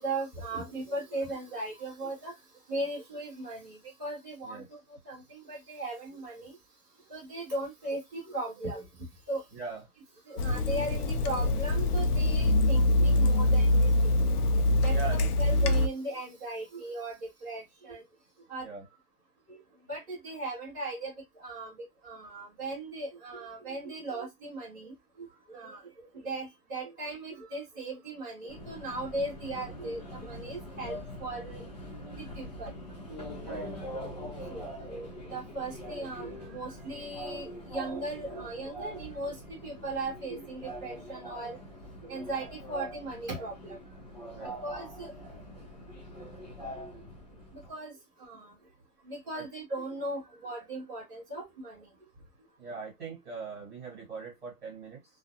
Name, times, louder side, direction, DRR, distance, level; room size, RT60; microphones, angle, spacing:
voice 1, 0.0-2.3 2.7-4.8 5.1-6.5 7.1-8.8 9.3-9.4 10.3-13.9 14.8-17.1 17.4-18.0 18.5-18.7 19.5-19.6 19.9-21.1 21.4-21.7 22.0-24.9 25.2-25.8 26.2-31.6 32.2-32.7 33.9-34.1 34.5-39.4 39.6-41.6 42.0-43.8 44.6-45.1 47.7-47.9 48.2-48.5 49.1-51.8, right 2 dB, 15° right, 0.7 m, -37 dB
Water tap faucet / Sink (filling or washing), 10.4-15.9, left 1 dB, 75° left, 0.6 m, -24 dB
voice 2, 14.9-15.2 18.6-18.8 33.4-34.2 44.3-44.6 49.3-49.4 52.6-55.0, right 5 dB, 40° right, 1.3 m, -41 dB
Subway metro underground, 28.5-47.7, equal, 30° left, 0.6 m, -43 dB
2.4 x 2.2 x 2.7 m
hypercardioid pair, 175°, 46 cm